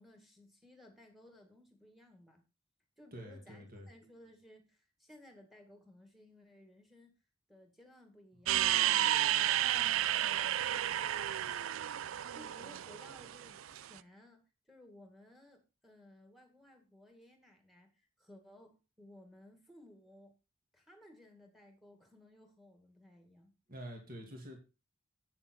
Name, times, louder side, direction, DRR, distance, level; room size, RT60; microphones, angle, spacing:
voice 1, 0.0-2.4 3.0-7.2 7.5-11.6 12.1-20.3 20.7-23.5, left 1 dB, ahead, 2.0 m, -59 dB
voice 2, 3.1-3.9 23.7-24.6, equal, 45° right, 2.2 m, -47 dB
sound 1, 8.5-13.9, right 12 dB, 80° right, 0.4 m, -32 dB
8.4 x 7.2 x 4.4 m
head